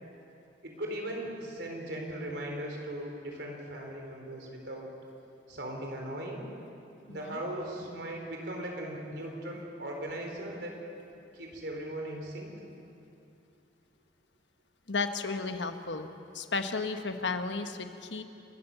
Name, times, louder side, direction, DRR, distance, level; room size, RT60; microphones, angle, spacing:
voice 1, 0.6-4.9 5.5-6.5 7.1-10.8 11.3-12.5, right 1 dB, 70° right, 1 dB, 4.0 m, -38 dB
voice 2, 7.1-7.4 14.9-16.1 16.3-18.2, left 4 dB, 80° left, 7 dB, 1.2 m, -33 dB
29.0 x 13.0 x 7.0 m, 2.7 s
head